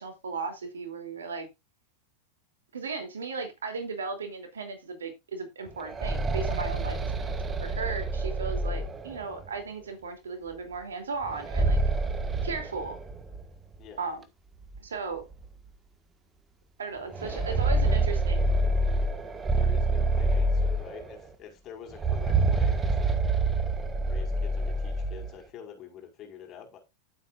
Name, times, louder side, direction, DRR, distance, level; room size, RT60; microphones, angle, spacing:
voice 1, 0.0-1.5 2.7-11.8 12.4-13.0 14.0-14.2 14.8-15.2 16.8-18.5, right 4 dB, 70° right, 3.1 m, -36 dB
sound 1, 5.7-9.5 11.2-13.4 13.7-13.8 14.7-14.8 15.3-15.4 17.1-21.2 21.9-25.3, right 2 dB, 20° right, 1.6 m, -27 dB
voice 2, 17.2-18.0 19.5-23.2 24.0-26.8, left 8 dB, 35° left, 4.6 m, -47 dB
14.5 x 8.1 x 2.5 m
figure-of-eight pair, 90°, 0 cm